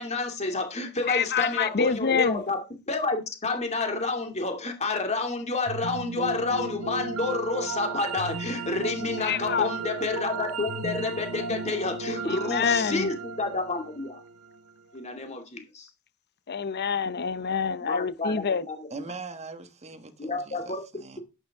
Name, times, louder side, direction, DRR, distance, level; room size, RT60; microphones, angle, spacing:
voice 1, 0.0-14.2 14.9-15.9 17.8-19.0 20.2-20.8, left 3 dB, 30° left, 2.4 m, -29 dB
voice 2, 1.1-2.4 9.2-9.7 12.3-13.1 16.5-18.7, left 6 dB, 50° left, 0.7 m, -26 dB
sound 1, 5.7-14.8, right 4 dB, 90° right, 0.7 m, -35 dB
voice 3, 18.9-21.2, right 3 dB, 30° right, 1.3 m, -41 dB
11.5 x 9.2 x 3.6 m
head